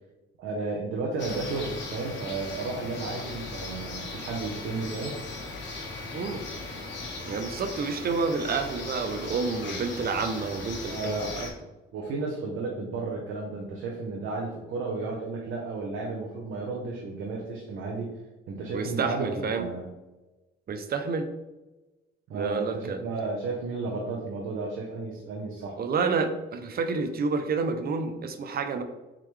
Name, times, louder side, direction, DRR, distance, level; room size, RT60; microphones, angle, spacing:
voice 1, 0.4-5.2 10.8-11.4 11.9-18.1 18.5-19.8 22.3-25.7, right 3 dB, 85° right, -1 dB, 0.9 m, -33 dB
sound 1, 1.2-11.5, left 3 dB, 65° left, 1.3 m, -38 dB
voice 2, 7.2-11.5 18.7-19.7 20.7-21.3 22.3-23.0 25.8-28.8, right 4 dB, 50° right, 8 dB, 0.6 m, -29 dB
4.3 x 3.8 x 3.2 m, 1.1 s
cardioid pair, 90°, 20 cm